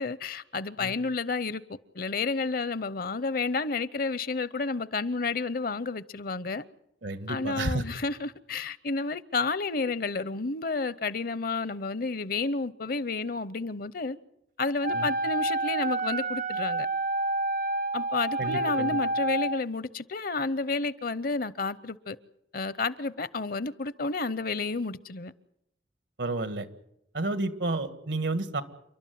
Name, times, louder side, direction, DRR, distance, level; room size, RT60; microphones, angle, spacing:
voice 1, 0.0-1.6 1.9-6.6 7.3-14.2 14.6-16.9 17.9-22.2 22.5-25.3, left 3 dB, 55° left, 0.7 m, -31 dB
voice 2, 7.0-7.8 14.9-15.1 18.4-19.0 26.2-26.7 27.1-28.6, right 2 dB, 85° right, 1.8 m, -31 dB
Wind instrument woodwind instrument, 14.8-19.6, right 2 dB, 50° right, 0.7 m, -29 dB
29.5 x 12.0 x 9.4 m
head